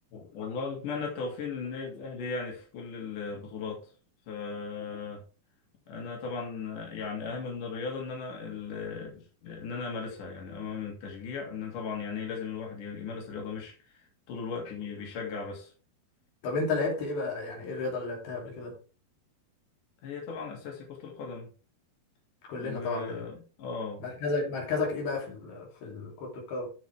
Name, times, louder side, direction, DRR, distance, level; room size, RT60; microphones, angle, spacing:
voice 1, 0.1-3.9 4.3-5.2 5.9-15.7 20.0-21.5 22.5-24.2, left 5 dB, 60° left, 4.3 m, -37 dB
voice 2, 16.4-18.8 22.5-23.2 24.0-26.7, left 3 dB, 85° left, 5.0 m, -32 dB
14.0 x 5.8 x 3.4 m
omnidirectional pair, 4.3 m